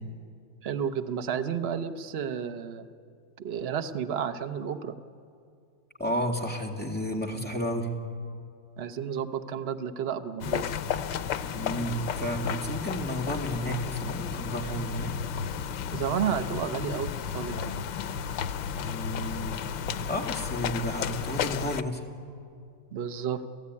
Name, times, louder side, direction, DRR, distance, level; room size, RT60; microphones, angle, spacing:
voice 1, 0.6-2.9 3.4-4.9 8.8-10.7 15.9-17.8 22.9-23.4, right 8 dB, 45° right, 8 dB, 0.9 m, -31 dB
voice 2, 6.0-7.9 11.5-15.1 18.8-19.7 20.1-22.0, equal, 5° left, 0 dB, 2.1 m, -32 dB
sound 1, 10.4-21.8, left 8 dB, 90° left, 1.5 m, -33 dB
29.0 x 15.5 x 9.7 m, 2.4 s
omnidirectional pair, 2.0 m